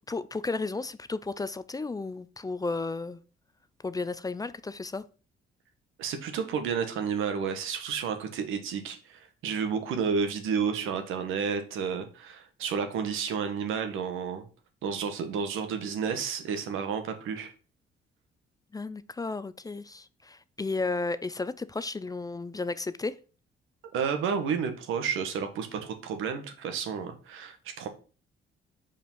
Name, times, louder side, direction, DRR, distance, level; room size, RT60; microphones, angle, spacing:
voice 1, 0.1-3.2 3.8-5.0 18.7-23.2, left 3 dB, 20° left, 0.4 m, -33 dB
voice 2, 6.0-14.4 14.8-17.5 23.9-27.9, right 6 dB, 90° right, 1.2 m, -31 dB
5.2 x 5.1 x 5.4 m
cardioid pair, 90°, 20 cm